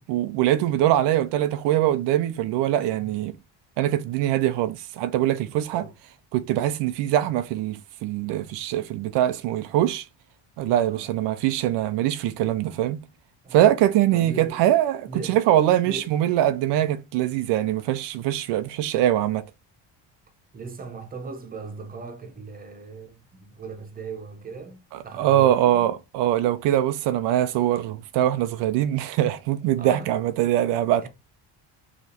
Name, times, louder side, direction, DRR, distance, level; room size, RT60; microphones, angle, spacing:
voice 1, 0.1-3.3 3.8-5.8 6.3-10.1 10.6-13.0 13.5-19.4 25.2-31.1, right 12 dB, 85° right, 0.6 m, -23 dB
voice 2, 5.3-5.9 10.6-11.1 13.4-13.7 14.1-14.7 15.1-15.4 15.8-16.1 20.5-25.9 29.7-30.1 31.0-31.1, right 4 dB, 20° right, 0.8 m, -39 dB
4.9 x 3.1 x 2.8 m
cardioid pair, 135°, 41 cm